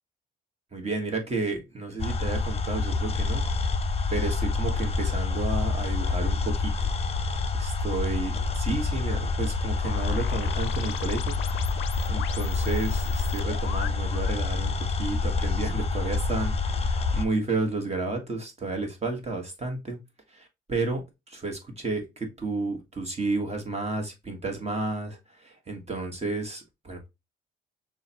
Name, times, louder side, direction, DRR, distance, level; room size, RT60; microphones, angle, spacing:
voice 1, 0.7-3.5 4.1-6.9 7.2-7.3 7.6-11.4 12.1-20.0 20.3-27.1, right 3 dB, 30° right, 4 dB, 1.5 m, -32 dB
sound 1, 2.0-17.2, left 4 dB, 30° left, 0.8 m, -27 dB
sound 2, 9.8-14.4, left 13 dB, 75° left, 0.4 m, -39 dB
6.3 x 2.5 x 2.9 m, 0.23 s
cardioid pair, 90°, 20 cm